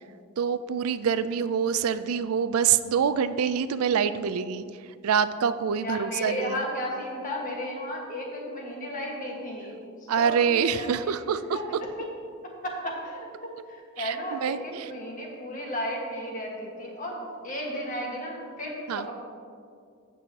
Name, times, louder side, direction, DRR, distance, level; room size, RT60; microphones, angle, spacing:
voice 1, 0.4-4.6 5.0-6.6 10.1-11.6 14.0-14.8 18.9-19.1, right 7 dB, 75° right, 13 dB, 0.4 m, -26 dB
voice 2, 5.8-9.7 10.0-11.2 11.5-12.1 12.6-19.1, equal, 35° left, -1 dB, 1.6 m, -34 dB
16.0 x 6.2 x 2.9 m, 2.2 s
head